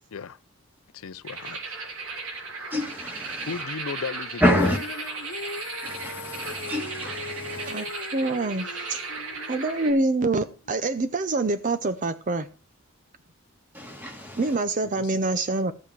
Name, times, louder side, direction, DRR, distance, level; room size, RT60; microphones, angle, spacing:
voice 1, 0.9-1.6 3.5-4.4 14.8-15.2, left 5 dB, 85° left, 0.5 m, -35 dB
sound 1, 1.2-9.9, right 3 dB, 80° right, 3.4 m, -36 dB
voice 2, 2.7-3.6 4.4-4.8 5.8-7.8 13.7-14.6, left 1 dB, 10° right, 2.2 m, -27 dB
Female singing, 4.5-10.8, left 3 dB, 60° left, 1.1 m, -40 dB
voice 3, 7.5-7.9 8.1-9.0 9.5-12.5 14.4-15.7, right 2 dB, 40° right, 0.6 m, -26 dB
13.5 x 8.3 x 4.6 m
head